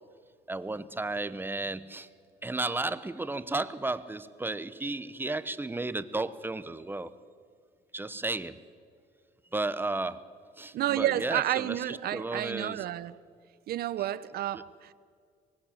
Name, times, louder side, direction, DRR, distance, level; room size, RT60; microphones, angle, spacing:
voice 1, 0.5-2.1 2.4-7.1 7.9-8.6 9.5-10.2 10.6-12.9 14.0-14.1 14.5-14.6, right 2 dB, 10° right, 1.0 m, -33 dB
voice 2, 10.7-13.2 13.7-14.9, right 13 dB, 65° right, 1.0 m, -30 dB
24.5 x 20.0 x 7.2 m
cardioid pair, 110°, 17 cm